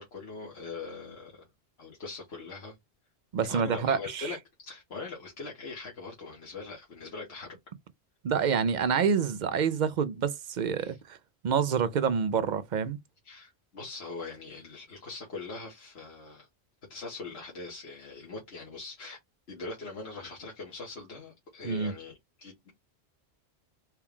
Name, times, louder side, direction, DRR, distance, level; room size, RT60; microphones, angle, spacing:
voice 1, 0.0-1.5 1.8-2.8 3.4-4.4 4.6-7.6 10.8-11.0 13.2-16.5 16.9-19.2 19.5-22.7, left 4 dB, 70° left, 1.5 m, -42 dB
voice 2, 3.3-4.4 8.2-11.2 11.4-13.0 21.6-21.9, right 6 dB, 55° right, 0.6 m, -27 dB
4.4 x 2.3 x 3.6 m
omnidirectional pair, 1.1 m